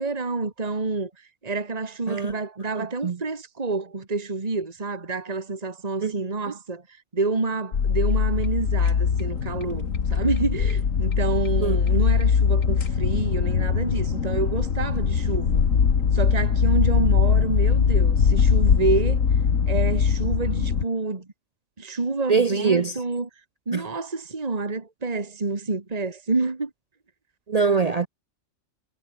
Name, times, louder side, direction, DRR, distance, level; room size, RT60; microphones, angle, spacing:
voice 1, 0.0-6.8 7.1-15.7 16.1-19.2 19.7-21.3 21.8-23.3 23.7-26.7, right 3 dB, 30° right, 2.0 m, -28 dB
voice 2, 2.7-3.2 6.0-6.1 6.5-6.6 11.6-11.8 22.3-22.9 23.7-23.9 27.5-28.1, right 5 dB, 45° right, 0.5 m, -23 dB
sound 1, 7.7-20.8, left 6 dB, 75° left, 1.9 m, -21 dB
omnidirectional pair, 1.4 m